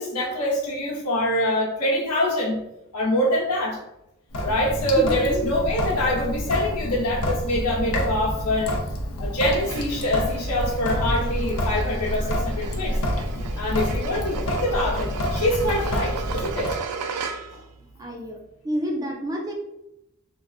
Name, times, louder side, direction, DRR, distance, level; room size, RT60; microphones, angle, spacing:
voice 1, 0.0-2.6 2.9-3.8 4.4-8.8 9.2-13.0 13.6-16.8 17.5-17.6, left 1 dB, 85° left, -3 dB, 0.9 m, -25 dB
Sink (filling or washing) / Drip, 4.3-16.8, equal, 65° left, 0.5 m, -28 dB
voice 2, 5.0-5.5 17.8-18.4 18.6-19.5, equal, 15° right, 0 dB, 0.5 m, -29 dB
sound 1, 9.6-17.7, right 5 dB, 75° right, 0.3 m, -36 dB
3.7 x 2.3 x 2.3 m, 0.86 s
head